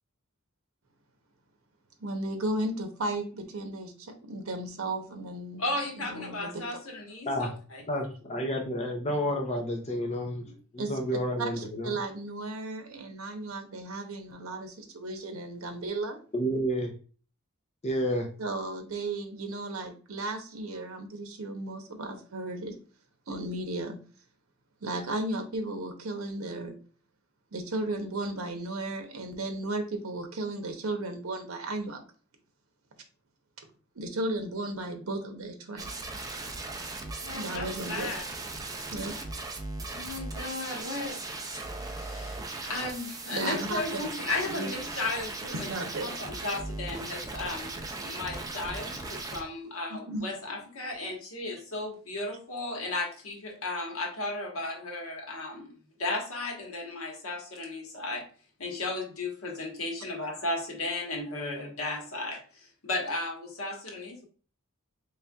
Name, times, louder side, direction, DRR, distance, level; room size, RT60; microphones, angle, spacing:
voice 1, 2.0-6.8 10.8-11.0 11.4-16.2 18.4-22.8 23.3-24.0 24.8-26.8 27.5-32.0 33.9-35.9 37.4-38.2 38.9-39.3 43.3-43.8 44.5-44.7 45.5-46.1 49.9-50.3, right 2 dB, 90° right, 5 dB, 0.8 m, -35 dB
voice 2, 5.6-7.8 37.2-38.2 39.0-39.2 39.9-41.2 41.7-45.7 46.0-55.7 56.0-58.3 58.6-64.2, left 2 dB, 90° left, 1 dB, 1.2 m, -35 dB
voice 3, 7.9-10.5 10.7-11.9 16.3-16.9 17.8-18.3, equal, 30° left, 3 dB, 0.5 m, -30 dB
sound 1, 35.8-49.4, right 2 dB, 15° right, 0.5 m, -38 dB
4.1 x 3.3 x 2.2 m, 0.39 s
head